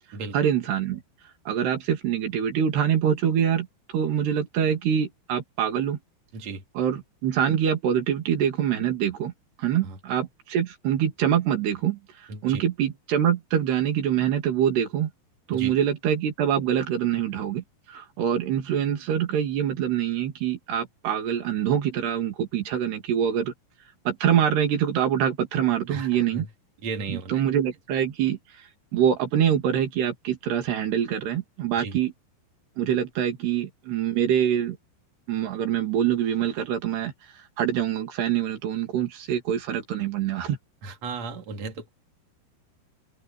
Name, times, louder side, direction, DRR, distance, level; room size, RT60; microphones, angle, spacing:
voice 1, 0.3-1.0 1.5-3.7 3.9-6.0 6.8-9.3 9.6-12.0 12.4-15.1 15.5-23.5 24.1-26.5 27.1-28.4 28.9-32.1 32.8-34.8 35.3-37.1 37.6-40.6, right 9 dB, 85° right, 4.8 m, -25 dB
voice 2, 6.3-6.6 9.8-10.0 12.3-12.6 15.5-15.7 25.9-26.5 26.8-27.4 31.8-32.0 40.8-41.9, right 4 dB, 45° right, 4.0 m, -35 dB
open air
omnidirectional pair, 4.6 m